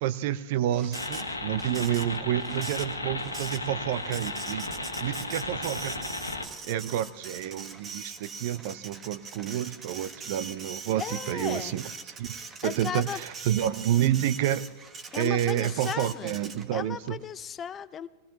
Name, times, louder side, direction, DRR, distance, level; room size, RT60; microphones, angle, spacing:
voice 1, 0.0-4.7 5.0-5.9 6.2-6.3 6.6-11.8 12.2-12.4 12.6-14.7 15.2-17.2, right 11 dB, 50° right, 15 dB, 0.6 m, -29 dB
Printer, 0.7-16.9, right 4 dB, 25° right, 1.4 m, -42 dB
sound 1, 0.9-6.5, left 2 dB, 80° left, 1.4 m, -35 dB
voice 2, 11.0-11.8 12.6-13.2 15.1-16.4 16.7-18.1, left 8 dB, 25° left, 14 dB, 0.7 m, -35 dB
22.0 x 18.0 x 2.9 m, 1.2 s
figure-of-eight pair, 90°, 0 cm